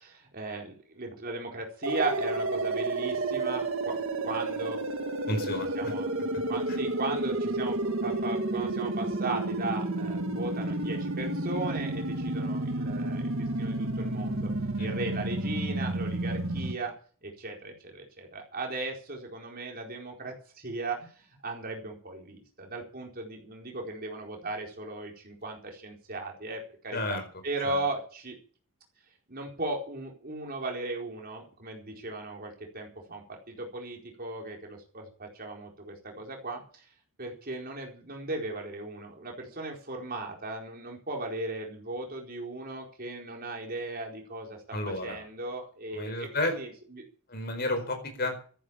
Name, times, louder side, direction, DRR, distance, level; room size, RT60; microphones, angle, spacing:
voice 1, 0.0-4.8 5.7-6.1 6.5-14.5 14.8-16.9 17.2-28.4 29.3-36.8 37.2-44.6 44.9-47.0, right 2 dB, 45° right, 1 dB, 4.4 m, -37 dB
sound 1, 1.8-16.7, right 2 dB, 70° right, 1.8 m, -31 dB
voice 2, 5.3-5.9 6.7-6.8 14.8-14.9 26.9-27.2 27.6-27.8 44.7-45.3 45.9-46.6 47.3-48.4, left 1 dB, 50° left, 6 dB, 4.7 m, -32 dB
14.0 x 11.0 x 7.2 m, 0.44 s
head